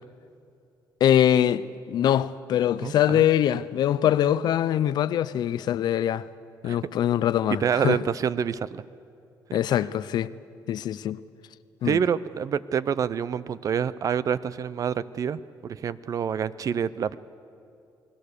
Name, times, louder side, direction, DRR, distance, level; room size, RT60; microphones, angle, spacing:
voice 1, 1.0-6.3 6.6-8.0 9.5-10.3 10.7-11.2 11.8-12.0, left 10 dB, 70° left, 0.6 m, -23 dB
voice 2, 2.8-3.2 6.6-6.8 7.5-8.8 11.8-15.4 15.7-17.2, right 7 dB, 50° right, 0.6 m, -27 dB
29.5 x 20.5 x 6.8 m
cardioid pair, 110°, 8 cm